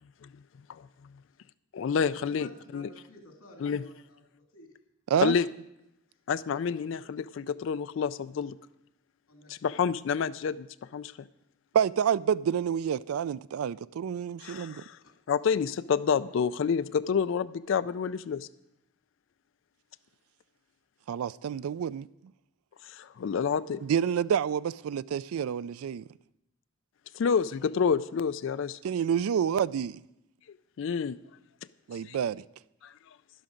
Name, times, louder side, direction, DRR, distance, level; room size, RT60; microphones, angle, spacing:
voice 1, 1.7-2.5 2.7-2.9 3.6-3.8 5.2-5.5 6.3-8.6 9.6-10.7 10.9-11.1 14.4-15.0 15.3-18.5 22.8-23.8 27.1-28.8 30.8-31.2 32.1-32.2 32.8-32.9, left 6 dB, 60° left, 0.3 m, -28 dB
voice 2, 2.3-4.7 6.4-7.0 9.3-9.8 15.0-15.1, left 1 dB, 85° left, 2.6 m, -54 dB
voice 3, 11.7-14.8 21.1-22.1 23.8-26.0 28.8-30.0 31.9-32.4, right 8 dB, 90° right, 0.3 m, -28 dB
11.5 x 11.0 x 5.1 m
head